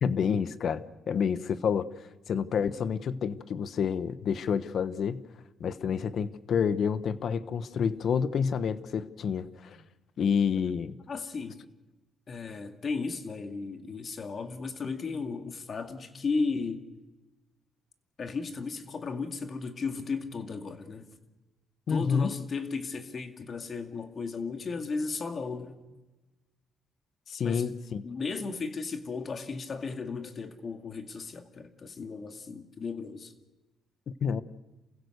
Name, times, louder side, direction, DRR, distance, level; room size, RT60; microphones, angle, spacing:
voice 1, 0.0-1.9 2.3-5.2 5.6-9.8 10.2-11.0 21.9-22.3 27.3-28.1 34.2-34.4, left 7 dB, 60° left, 1.1 m, -28 dB
voice 2, 11.1-11.6 12.3-16.8 18.2-21.1 21.9-25.8 27.4-27.7 28.0-33.3, left 4 dB, 45° left, 2.3 m, -35 dB
28.5 x 16.0 x 6.8 m
cardioid pair, 90°, 0 cm